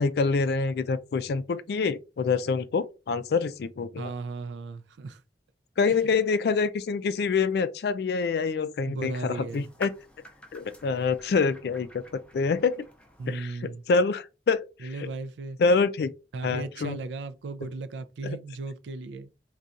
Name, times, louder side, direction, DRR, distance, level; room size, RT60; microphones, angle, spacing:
voice 1, 0.0-4.1 5.8-9.9 10.5-12.8 13.3-13.6 13.9-15.1 15.6-16.1 16.4-17.0 18.2-18.4, left 4 dB, 60° left, 0.3 m, -26 dB
voice 2, 4.0-5.2 5.8-6.1 8.9-9.7 13.2-13.9 14.8-15.6 16.3-19.3, right 3 dB, 80° right, 0.4 m, -36 dB
sound 1, 9.5-13.5, equal, 5° left, 0.5 m, -48 dB
4.0 x 2.3 x 2.4 m
head